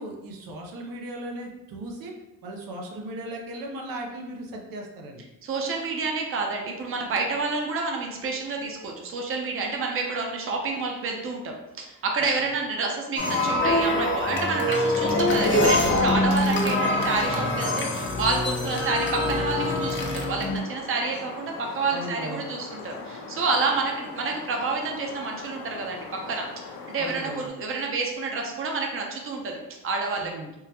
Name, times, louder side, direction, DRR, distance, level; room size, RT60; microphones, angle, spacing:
voice 1, 0.0-2.1 2.4-5.2 12.4-12.5 21.9-22.4 27.0-27.5 30.2-30.5, right 1 dB, 85° right, 1 dB, 0.6 m, -37 dB
voice 2, 5.4-26.0 26.3-26.5 26.9-29.6 29.8-30.3, right 3 dB, 40° right, 1 dB, 0.6 m, -29 dB
sound 1, 13.2-20.6, left 1 dB, 35° left, 0.6 m, -24 dB
sound 2, 14.3-27.5, left 4 dB, 85° left, 0.5 m, -40 dB
3.6 x 2.1 x 2.8 m, 0.95 s
cardioid pair, 100°, 33 cm